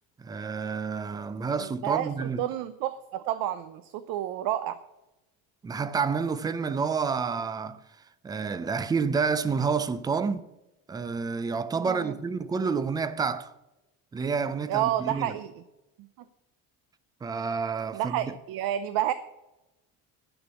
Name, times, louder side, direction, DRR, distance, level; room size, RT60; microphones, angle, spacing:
voice 1, 0.2-2.5 5.6-7.8 8.2-10.4 10.9-13.5 14.1-15.3 17.2-18.2, right 5 dB, 10° right, 0.3 m, -29 dB
voice 2, 1.6-4.8 11.9-12.2 14.7-15.5 17.9-19.1, right 12 dB, 75° right, 0.7 m, -30 dB
11.5 x 6.1 x 6.9 m
cardioid pair, 165°, 35 cm